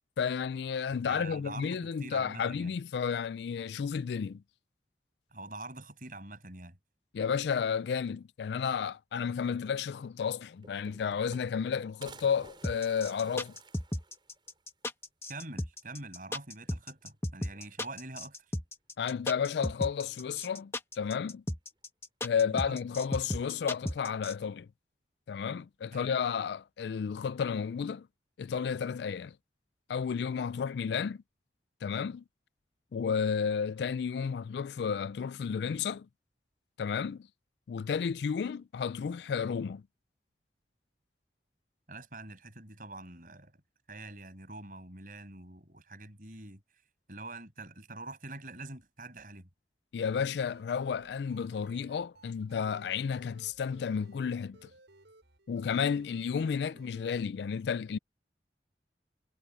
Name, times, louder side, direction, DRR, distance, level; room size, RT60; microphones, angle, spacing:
voice 1, 0.2-4.4 7.1-13.6 19.0-21.4 22.2-24.7 25.3-28.1 28.4-29.3 29.9-31.2 31.8-32.2 32.9-36.1 36.8-37.3 37.7-39.8 49.9-54.6 55.5-58.0, left 6 dB, 75° left, 0.3 m, -32 dB
voice 2, 1.0-2.7 5.3-6.8 15.3-18.4 22.4-22.8 25.9-26.1 41.9-43.5 43.9-46.6 47.1-49.5 56.7-56.8, right 2 dB, 50° right, 6.7 m, -45 dB
sound 1, 10.0-10.1 10.4-11.7 12.0-14.6 15.0-15.1 15.4-15.5 16.6-17.1 17.5-18.2 19.3-19.8, right 3 dB, 25° right, 6.1 m, -54 dB
sound 2, 12.6-24.3, left 1 dB, 15° left, 1.3 m, -35 dB
sound 3, 50.0-57.1, right 2 dB, 85° right, 7.4 m, -59 dB
head